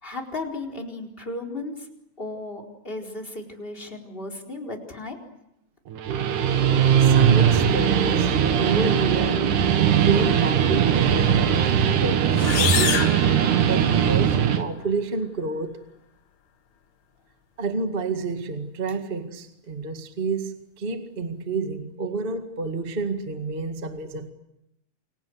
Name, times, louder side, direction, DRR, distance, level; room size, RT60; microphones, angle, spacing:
voice 1, 0.0-1.9 2.2-5.2, left 2 dB, 15° left, 4.4 m, -35 dB
Guitar, 5.9-14.6, right 8 dB, 80° right, 3.1 m, -20 dB
voice 2, 6.9-8.3 8.6-9.5 9.9-13.2 13.7-15.8 17.6-24.3, right 4 dB, 20° right, 1.6 m, -29 dB
sound 1, 12.3-14.2, left 10 dB, 75° left, 2.7 m, -27 dB
29.5 x 23.5 x 8.0 m
omnidirectional pair, 3.6 m